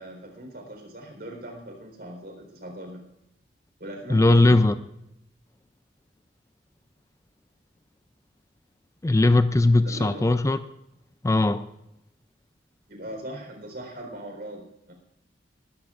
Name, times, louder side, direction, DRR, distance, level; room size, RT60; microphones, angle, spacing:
voice 1, 0.0-3.0 3.8-4.6 9.8-10.2 12.9-14.9, right 1 dB, 60° right, 3 dB, 4.2 m, -39 dB
voice 2, 4.1-4.8 9.0-10.6 11.2-11.7, left 2 dB, 15° left, 12 dB, 0.4 m, -19 dB
20.5 x 13.0 x 2.5 m, 0.83 s
head